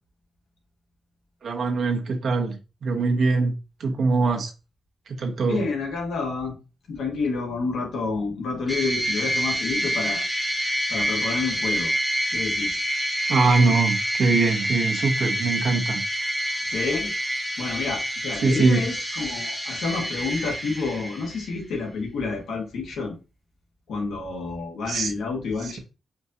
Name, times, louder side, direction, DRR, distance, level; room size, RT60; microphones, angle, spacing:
voice 1, 1.4-3.5 3.8-4.5 5.1-5.6 13.3-16.0 18.4-18.8 24.9-25.1, right 3 dB, 65° right, 0.9 m, -22 dB
voice 2, 5.5-6.6 6.9-10.2 10.9-11.9 12.3-12.8 16.7-17.1 17.6-23.1 23.9-25.8, left 4 dB, 80° left, 1.3 m, -29 dB
sound 1, 8.7-21.5, equal, 5° left, 0.9 m, -27 dB
4.6 x 2.6 x 2.7 m
cardioid pair, 85°, 0 cm